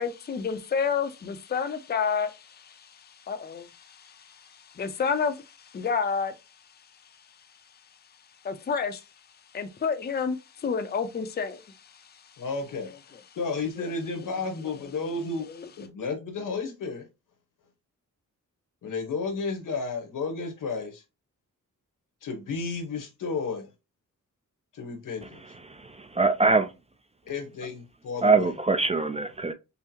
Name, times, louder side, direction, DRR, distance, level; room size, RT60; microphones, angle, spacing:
voice 1, 0.0-4.4 4.7-6.3 8.4-9.0 9.5-11.6 15.5-15.7, left 6 dB, 30° left, 0.5 m, -30 dB
voice 2, 12.4-12.9 13.4-15.5 15.8-17.0 18.8-21.0 22.2-23.7 24.7-25.4 27.3-28.5, left 4 dB, 80° left, 1.1 m, -32 dB
voice 3, 25.7-26.7 28.2-29.5, right 3 dB, 20° right, 0.4 m, -23 dB
5.6 x 2.0 x 2.9 m
wide cardioid pair, 115°, 32 cm